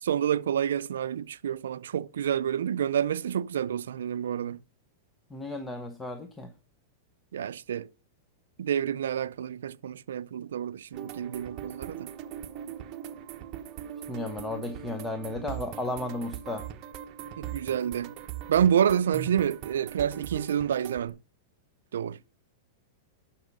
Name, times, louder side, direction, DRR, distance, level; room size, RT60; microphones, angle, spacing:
voice 1, 0.0-4.6 7.3-7.9 8.6-12.1 17.4-18.1 18.5-21.2 21.9-22.2, right 9 dB, 90° right, 0.4 m, -28 dB
voice 2, 5.3-6.5 14.1-16.7, left 2 dB, 10° left, 0.9 m, -34 dB
sound 1, 10.9-21.1, right 10 dB, 35° right, 1.0 m, -40 dB
11.0 x 5.9 x 5.4 m
supercardioid pair, 140°, 0 cm